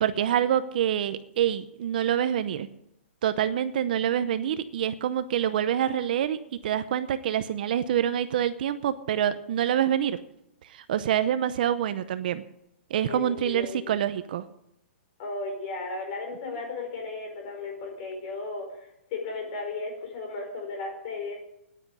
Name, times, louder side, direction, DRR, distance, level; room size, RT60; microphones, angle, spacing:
voice 1, 0.0-2.7 3.2-6.4 6.6-10.2 10.6-12.4 12.9-14.4, right 10 dB, 45° right, 12 dB, 0.7 m, -26 dB
voice 2, 13.1-13.9 15.2-18.7 19.1-21.4, left 3 dB, 35° left, 2 dB, 4.9 m, -35 dB
10.5 x 9.6 x 10.0 m, 0.80 s
hypercardioid pair, 170°, 7 cm